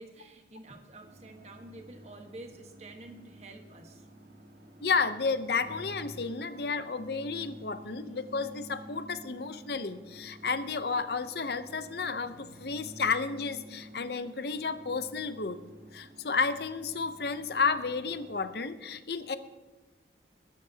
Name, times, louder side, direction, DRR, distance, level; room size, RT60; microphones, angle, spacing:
voice 1, 0.0-4.1 7.4-7.6, right 2 dB, 35° right, 4 dB, 1.4 m, -49 dB
sound 1, 1.0-18.6, equal, 55° right, 1.7 m, -51 dB
voice 2, 4.8-15.6 15.9-19.4, left 4 dB, 65° left, 11 dB, 0.7 m, -32 dB
21.0 x 12.0 x 2.8 m, 1.3 s
head